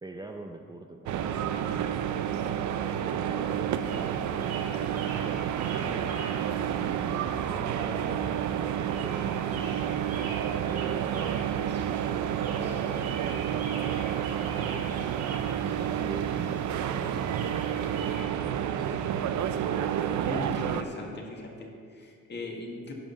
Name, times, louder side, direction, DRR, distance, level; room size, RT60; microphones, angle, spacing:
voice 1, 0.0-6.2 6.7-14.0 14.4-15.1 15.6-19.2, right 2 dB, 15° right, 2 dB, 0.7 m, -44 dB
sound 1, 1.1-20.8, right 9 dB, 70° right, 0.6 m, -30 dB
sound 2, 3.8-18.2, right 3 dB, 55° right, 2.2 m, -45 dB
voice 2, 20.3-22.9, left 2 dB, 35° left, 0 dB, 2.0 m, -39 dB
11.0 x 5.2 x 7.2 m, 2.3 s
cardioid pair, 90°, 30 cm